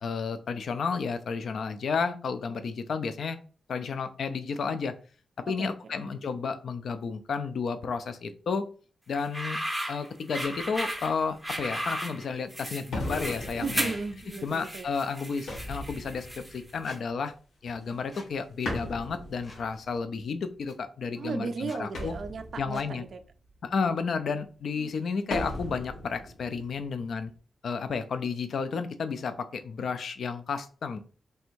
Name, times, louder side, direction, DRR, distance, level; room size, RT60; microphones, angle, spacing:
voice 1, 0.0-3.4 3.7-4.9 5.5-8.7 9.1-9.6 9.9-13.9 14.4-17.3 17.6-22.1 22.6-23.0 23.6-27.3 27.6-31.0, left 5 dB, 60° left, 9 dB, 0.3 m, -32 dB
voice 2, 5.5-6.2 13.6-14.9 21.2-23.2 24.7-25.1, right 4 dB, 50° right, 7 dB, 0.3 m, -36 dB
sound 1, 9.1-16.7, equal, ahead, 0.6 m, -35 dB
sound 2, 10.6-11.0 11.7-11.8 12.9-17.2 17.6-18.3 18.6-20.2 21.9-23.6 25.3-27.4, left 1 dB, 90° left, 1.3 m, -38 dB
Squeak, 15.5-15.6 16.8-17.0 18.1-18.3 19.4-19.7 20.7-20.8 21.6-21.8 22.7-22.9, left 2 dB, 30° left, 0.7 m, -49 dB
3.3 x 2.6 x 4.4 m, 0.39 s
wide cardioid pair, 170°, 0 cm